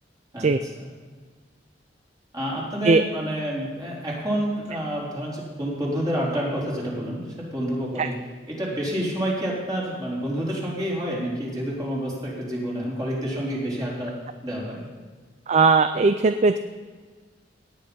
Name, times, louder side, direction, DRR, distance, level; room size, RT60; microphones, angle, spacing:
voice 1, 0.3-0.9 2.3-8.2 8.5-14.2 14.4-14.9, equal, 20° right, -5 dB, 3.7 m, -28 dB
voice 2, 15.5-16.6, right 4 dB, 40° right, 10 dB, 0.4 m, -18 dB
17.5 x 8.9 x 5.4 m, 1.4 s
head